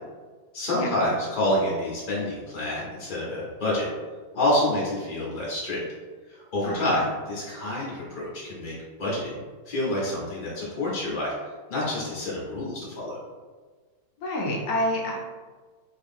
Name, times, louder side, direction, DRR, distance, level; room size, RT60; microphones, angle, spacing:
voice 1, 0.5-3.9 4.3-5.8 6.3-11.3 11.7-13.2, left 1 dB, 55° left, -6 dB, 0.5 m, -28 dB
voice 2, 6.6-7.0 14.2-15.2, left 1 dB, 70° left, -1 dB, 0.9 m, -28 dB
2.9 x 2.5 x 3.4 m, 1.4 s
omnidirectional pair, 1.9 m